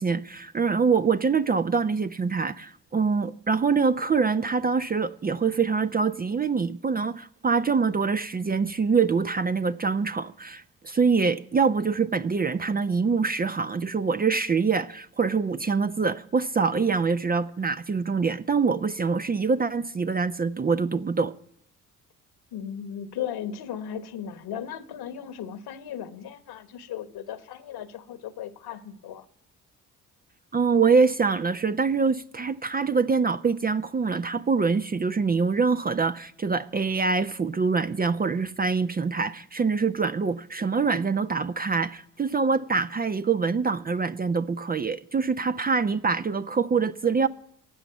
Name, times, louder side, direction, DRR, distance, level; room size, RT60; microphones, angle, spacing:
voice 1, 0.0-21.3 30.5-47.3, right 5 dB, 20° right, 0.6 m, -25 dB
voice 2, 22.5-29.2, left 9 dB, 60° left, 1.5 m, -36 dB
16.0 x 6.0 x 9.2 m
hypercardioid pair, 50°, 44 cm